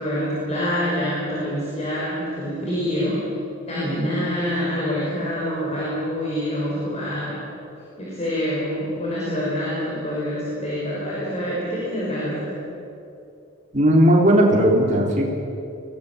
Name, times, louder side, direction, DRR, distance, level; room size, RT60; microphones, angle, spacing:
voice 1, 0.0-3.2 3.7-7.4 8.0-12.6, equal, 30° left, -6 dB, 5.7 m, -26 dB
voice 2, 13.7-15.2, equal, 35° right, -2 dB, 3.6 m, -16 dB
22.5 x 18.5 x 8.6 m, 2.7 s
head